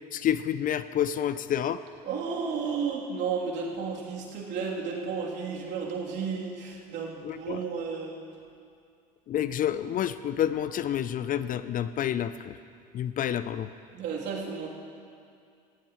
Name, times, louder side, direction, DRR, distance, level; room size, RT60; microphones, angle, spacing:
voice 1, 0.1-1.8 7.2-7.6 9.3-12.6 12.9-13.7, left 10 dB, 40° left, 14 dB, 0.5 m, -29 dB
voice 2, 2.0-8.2 13.9-14.7, right 5 dB, 55° right, -3 dB, 3.2 m, -33 dB
19.0 x 15.5 x 3.1 m, 2.4 s
hypercardioid pair, 70°, 21 cm